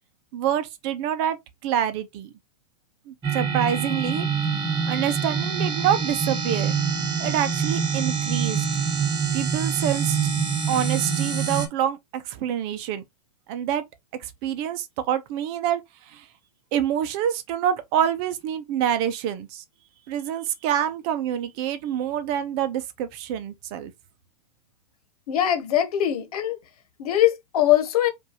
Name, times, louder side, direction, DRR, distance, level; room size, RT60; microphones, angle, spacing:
voice 1, 0.3-1.4 1.6-2.3 3.1-4.3 4.9-6.7 7.2-8.7 9.3-10.2 10.7-13.0 13.5-13.8 14.2-16.3 16.7-19.6 20.1-23.9, right 10 dB, 40° right, 0.7 m, -26 dB
sound 1, 3.2-11.7, right 6 dB, 20° right, 1.2 m, -25 dB
voice 2, 25.3-26.6 27.0-28.1, left 12 dB, 70° left, 1.2 m, -21 dB
5.2 x 2.6 x 2.9 m
hypercardioid pair, 145°, 20 cm